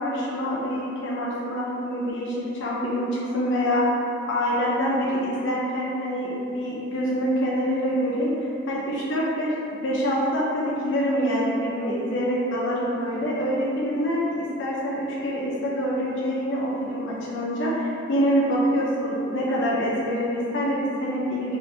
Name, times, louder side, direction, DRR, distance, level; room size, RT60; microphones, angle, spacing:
voice 1, 0.0-3.8 4.3-8.3 8.7-21.6, equal, 60° left, -6 dB, 0.5 m, -25 dB
2.8 x 2.5 x 3.1 m, 2.8 s
head